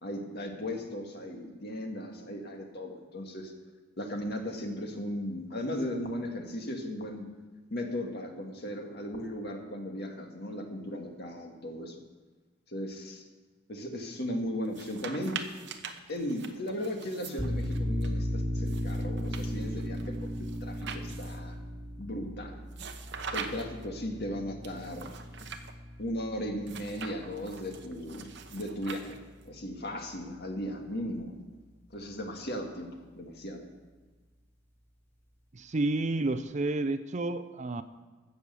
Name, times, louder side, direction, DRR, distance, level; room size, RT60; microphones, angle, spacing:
voice 1, 0.0-3.5 4.0-7.3 7.7-12.0 12.7-13.2 13.7-15.4 16.1-21.6 22.0-22.6 23.3-25.1 26.0-29.2 29.4-31.3 31.9-32.9 33.1-33.7, equal, 55° left, 2 dB, 1.9 m, -37 dB
sound 1, 14.6-18.1 18.7-21.5 22.7-23.9 24.6-25.7 26.6-29.5, right 6 dB, 65° right, 1.0 m, -43 dB
sound 2, 17.4-28.7, equal, 10° left, 2.3 m, -36 dB
voice 2, 35.5-37.8, right 2 dB, 40° right, 12 dB, 0.5 m, -30 dB
16.0 x 6.5 x 6.9 m, 1.3 s
head